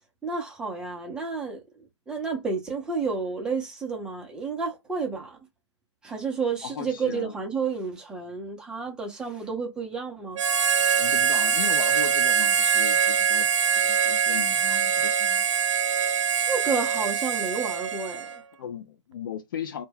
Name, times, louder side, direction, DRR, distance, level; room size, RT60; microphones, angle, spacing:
voice 1, 0.2-5.4 6.0-10.4 16.0-18.4, right 4 dB, 5° right, 0.6 m, -31 dB
voice 2, 6.6-7.3 11.0-13.5 13.7-15.5 18.6-19.9, left 8 dB, 45° left, 0.4 m, -36 dB
Harmonica, 10.3-18.4, right 7 dB, 75° right, 0.4 m, -23 dB
2.2 x 2.2 x 3.3 m
figure-of-eight pair, 135°, 16 cm